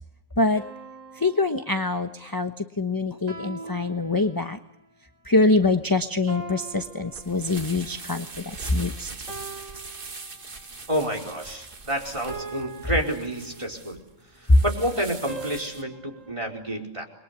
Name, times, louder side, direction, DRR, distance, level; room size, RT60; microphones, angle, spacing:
sound 1, 0.5-2.2 3.3-4.8 6.3-7.9 9.3-10.8 12.3-14.0 15.3-16.3, right 3 dB, 70° right, 4.8 m, -42 dB
voice 1, 1.2-4.6 5.3-8.3 8.6-9.1, left 2 dB, 15° left, 8 dB, 1.0 m, -24 dB
sound 2, 6.8-15.8, right 4 dB, 40° right, 1.8 m, -42 dB
voice 2, 10.9-14.0 14.6-17.0, right 1 dB, 20° right, 4 dB, 4.8 m, -29 dB
29.5 x 23.0 x 8.4 m, 0.76 s
omnidirectional pair, 1.4 m